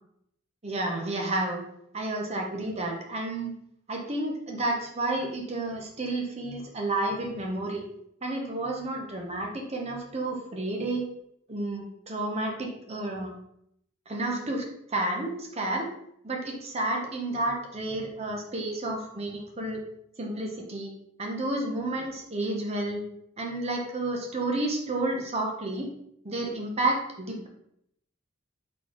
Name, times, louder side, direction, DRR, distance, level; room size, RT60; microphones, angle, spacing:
voice 1, 0.6-1.6 1.9-3.5 3.9-7.9 8.2-11.1 11.5-13.3 14.1-15.9 16.2-19.8 20.2-20.9 21.2-23.0 23.4-25.9 26.2-27.5, right 2 dB, 30° right, 0 dB, 0.8 m, -31 dB
4.1 x 3.9 x 3.0 m, 0.73 s
head